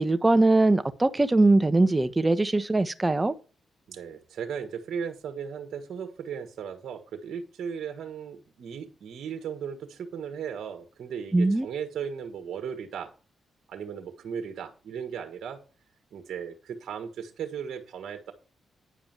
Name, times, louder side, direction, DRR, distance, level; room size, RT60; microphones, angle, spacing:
voice 1, 0.0-3.3 11.3-11.7, right 2 dB, 20° right, 1.3 m, -21 dB
voice 2, 3.9-13.1 13.7-15.6 16.1-18.3, right 7 dB, 75° right, 1.5 m, -36 dB
10.0 x 5.0 x 7.4 m
supercardioid pair, 50°, 0 cm